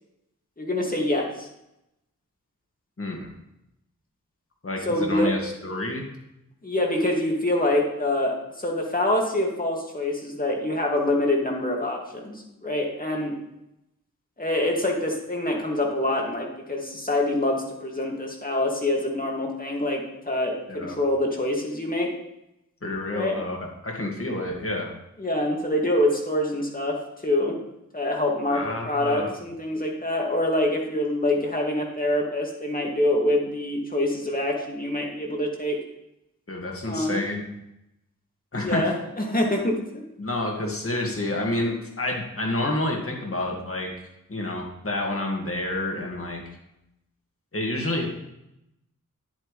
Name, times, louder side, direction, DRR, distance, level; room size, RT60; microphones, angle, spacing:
voice 1, 0.6-1.5 4.9-5.4 6.6-13.3 14.4-22.1 23.1-23.4 25.2-27.0 27.2-27.5 27.9-35.8 36.8-37.2 38.6-39.7, left 1 dB, 25° left, 0 dB, 2.2 m, -25 dB
voice 2, 3.0-3.3 4.6-6.1 20.7-21.0 22.8-23.6 23.8-24.9 28.5-29.3 36.5-37.5 38.5-38.8 40.2-43.9 44.3-46.4 47.5-48.1, left 1 dB, 45° left, 0 dB, 2.1 m, -29 dB
9.9 x 9.0 x 3.3 m, 0.86 s
wide cardioid pair, 75°, 32 cm